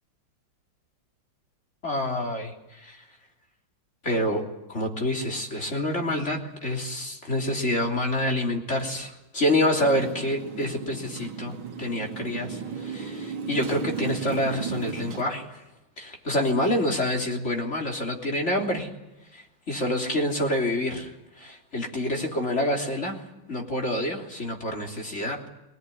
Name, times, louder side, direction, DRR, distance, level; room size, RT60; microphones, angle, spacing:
voice 1, 1.8-2.5 2.8-3.0 4.0-4.4 4.7-15.6 16.0-18.9 19.3-21.1 21.4-23.2 23.5-25.5, left 1 dB, 35° left, 1 dB, 3.6 m, -27 dB
Motorcycle, 9.8-15.2, right 6 dB, 85° right, 2.3 m, -35 dB
23.0 x 19.5 x 9.9 m, 0.95 s
omnidirectional pair, 2.2 m